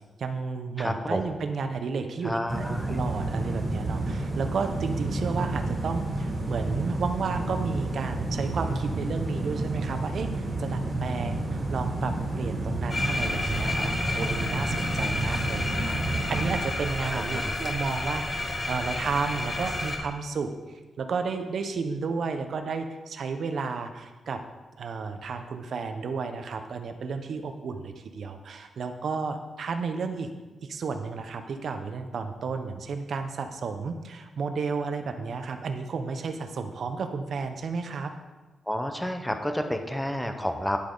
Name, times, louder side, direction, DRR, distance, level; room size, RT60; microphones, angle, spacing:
voice 1, 0.2-20.5 21.0-24.4 24.8-30.3 30.6-38.1, right 4 dB, 60° right, 7 dB, 0.9 m, -32 dB
voice 2, 0.8-1.2 2.2-3.0 17.0-17.6 38.7-40.8, equal, 5° left, 6 dB, 0.9 m, -30 dB
sound 1, 2.5-16.6, right 2 dB, 35° right, 2.2 m, -30 dB
sound 2, 12.9-20.0, left 2 dB, 25° left, 1.4 m, -31 dB
10.5 x 8.5 x 3.9 m, 1.2 s
wide cardioid pair, 125°, 0 cm